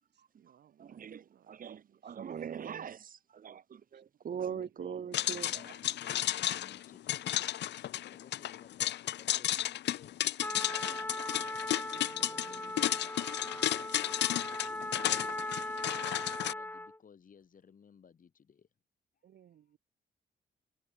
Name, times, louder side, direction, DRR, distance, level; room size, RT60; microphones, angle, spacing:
voice 1, 0.1-2.2 3.9-4.0 4.4-5.1 11.9-13.1 13.4-13.8 19.2-19.8, right 10 dB, 70° right, 7.9 m, -62 dB
voice 2, 0.8-5.6, right 8 dB, 50° right, 1.4 m, -41 dB
voice 3, 4.5-7.5 8.1-13.2 13.4-18.7, left 7 dB, 50° left, 4.0 m, -59 dB
sound 1, 5.1-16.5, left 13 dB, 75° left, 0.8 m, -33 dB
Trumpet, 10.4-17.0, left 1 dB, 10° left, 2.0 m, -39 dB
cardioid pair, 95°, 18 cm